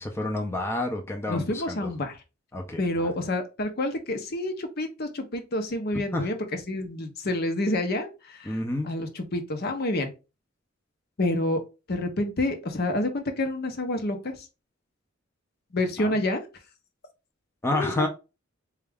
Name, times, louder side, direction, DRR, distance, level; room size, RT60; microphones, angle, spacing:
voice 1, 0.0-1.9 2.5-3.1 5.9-6.3 8.5-8.9 16.0-16.1 17.6-18.1, left 2 dB, 15° left, 0.5 m, -29 dB
voice 2, 1.3-2.2 2.8-6.4 6.7-8.6 8.8-10.1 11.2-11.6 11.9-14.5 15.7-16.4 17.7-18.1, left 1 dB, 55° left, 0.8 m, -28 dB
4.2 x 2.3 x 3.4 m
head